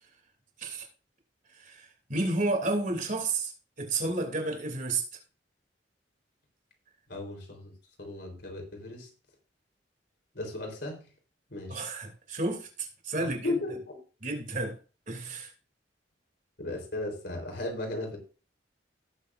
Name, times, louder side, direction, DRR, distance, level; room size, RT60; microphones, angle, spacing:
voice 1, 1.5-3.5 3.8-5.2 11.7-13.6 14.2-14.8 15.1-15.5, right 2 dB, 50° right, 2.9 m, -31 dB
voice 2, 7.1-7.7 8.0-9.1 10.3-11.0 11.5-11.8 13.2-13.7 16.6-18.2, left 2 dB, 65° left, 4.0 m, -35 dB
18.0 x 7.3 x 2.6 m
head